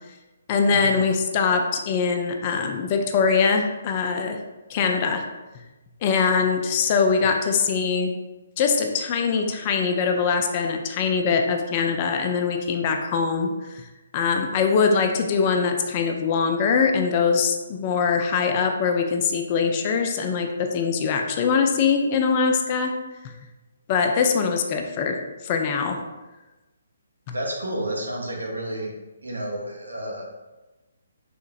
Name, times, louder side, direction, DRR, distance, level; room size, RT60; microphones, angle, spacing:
voice 1, 0.5-4.4 4.7-5.2 6.0-8.1 8.6-13.8 14.1-22.9 23.2-23.3 23.9-25.2 25.4-26.0, left 5 dB, 30° left, 4 dB, 0.3 m, -22 dB
voice 2, 27.3-28.9 29.2-30.2, right 1 dB, 75° right, -1 dB, 0.8 m, -30 dB
3.5 x 2.8 x 2.4 m, 1.1 s
figure-of-eight pair, 135°, 0 cm